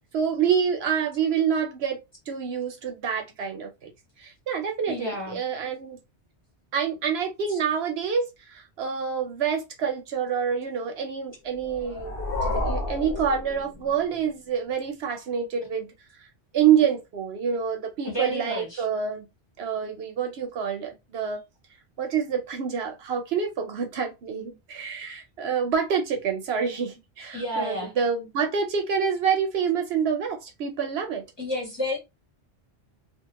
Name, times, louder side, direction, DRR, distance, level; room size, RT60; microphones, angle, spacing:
voice 1, 0.1-2.0 2.3-3.9 4.2-6.0 6.7-12.1 12.4-15.9 16.5-19.3 19.6-21.4 22.0-31.2, right 7 dB, 70° right, 0.8 m, -27 dB
voice 2, 4.9-5.4 7.5-7.6 18.0-18.8 27.3-27.9 31.4-32.0, left 1 dB, 25° left, 0.9 m, -31 dB
sound 1, 11.6-14.2, left 2 dB, 60° left, 1.0 m, -31 dB
2.4 x 2.2 x 2.8 m
omnidirectional pair, 1.2 m